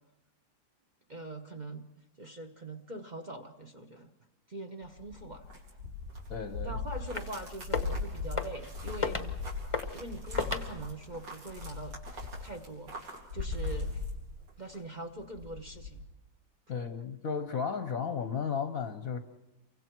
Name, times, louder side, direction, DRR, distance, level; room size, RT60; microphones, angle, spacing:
voice 1, 1.1-1.9 2.2-4.1 4.5-5.5 6.6-9.3 9.9-14.0 14.6-16.0, right 1 dB, 35° right, 4 dB, 0.7 m, -43 dB
sound 1, 4.8-14.7 15.1-16.0, left 3 dB, 80° right, 5.1 m, -38 dB
voice 2, 6.3-6.8 16.7-19.2, left 6 dB, 50° left, 8 dB, 1.1 m, -34 dB
sound 2, 7.1-7.4 7.6-8.0 8.4-8.7 9.0-9.3 9.7-10.0 10.4-10.7, left 4 dB, 25° left, 0.7 m, -33 dB
29.0 x 24.0 x 4.6 m, 0.96 s
omnidirectional pair, 2.4 m